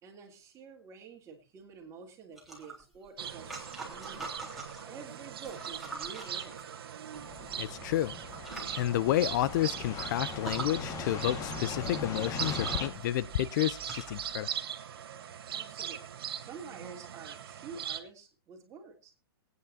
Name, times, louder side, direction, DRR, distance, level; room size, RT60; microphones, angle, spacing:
voice 1, 0.0-4.3 4.9-6.6 15.5-16.0 16.4-19.1, right 5 dB, 25° right, 2.9 m, -48 dB
sound 1, 2.4-4.9 5.3-7.2 7.9-8.0 8.3-8.8 9.3-9.4 9.7-9.8 10.3-10.7 11.7-11.8 12.2-14.3, right 3 dB, ahead, 3.6 m, -44 dB
sound 2, 3.2-18.0, right 9 dB, 75° right, 1.4 m, -40 dB
sound 3, 7.1-12.9, left 4 dB, 25° left, 1.7 m, -40 dB
voice 2, 7.6-8.2 8.7-14.5, left 13 dB, 50° left, 0.6 m, -30 dB
23.0 x 9.5 x 2.8 m
hypercardioid pair, 135°, 13 cm